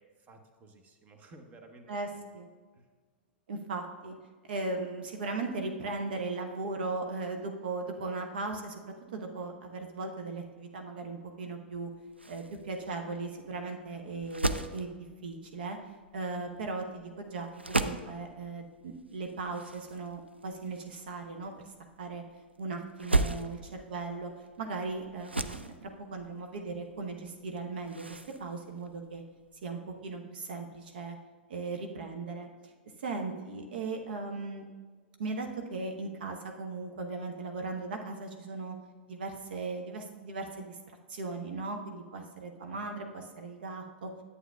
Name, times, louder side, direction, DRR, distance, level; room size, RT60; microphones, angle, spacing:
voice 1, 0.0-2.2 2.7-2.9 23.1-23.3 42.6-42.8, right 2 dB, 25° right, 5 dB, 1.0 m, -55 dB
voice 2, 3.5-4.1 4.4-11.9 12.3-14.9 15.2-15.8 16.1-22.2 22.6-24.3 24.6-29.2 29.6-31.2 31.5-32.7 33.0-34.6 35.2-38.8 39.1-40.8 41.1-44.2, right 3 dB, 60° right, 4 dB, 0.8 m, -38 dB
sound 1, 11.7-29.7, right 2 dB, 90° right, 0.4 m, -37 dB
11.0 x 8.2 x 2.3 m, 1.4 s
figure-of-eight pair, 100°, 6 cm